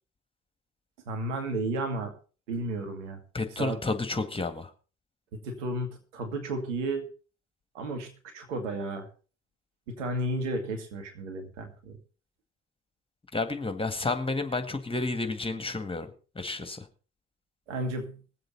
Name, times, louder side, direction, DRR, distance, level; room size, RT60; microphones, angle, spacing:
voice 1, 1.1-2.1 2.5-3.2 3.6-3.8 5.4-7.1 7.7-9.1 9.9-12.0 17.7-18.2, right 2 dB, 80° right, 5 dB, 2.2 m, -33 dB
voice 2, 3.3-4.7 13.3-16.1 16.4-16.8, left 3 dB, 15° left, 8 dB, 1.9 m, -31 dB
20.5 x 7.8 x 4.1 m, 0.37 s
figure-of-eight pair, 50°, 36 cm